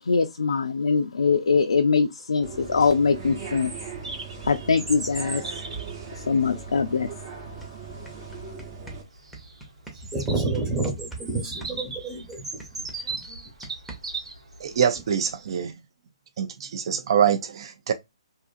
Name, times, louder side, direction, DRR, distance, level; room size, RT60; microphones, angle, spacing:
voice 1, 0.0-3.7 4.0-4.1 4.4-5.6 6.1-7.5 7.9-8.3, left 5 dB, 85° left, 0.4 m, -23 dB
sound 1, 2.4-9.0, right 5 dB, 40° right, 0.8 m, -39 dB
Bird vocalization bird call bird song, 2.6-15.3, right 3 dB, 85° right, 1.2 m, -39 dB
sound 2, 7.1-7.2 7.4-11.3 11.6-14.3, right 2 dB, ahead, 0.7 m, -44 dB
voice 2, 9.9-13.2, right 3 dB, 20° right, 1.0 m, -30 dB
voice 3, 14.6-15.7 16.4-17.9, right 8 dB, 55° right, 0.4 m, -24 dB
2.7 x 2.4 x 2.4 m
hypercardioid pair, 145°, 3 cm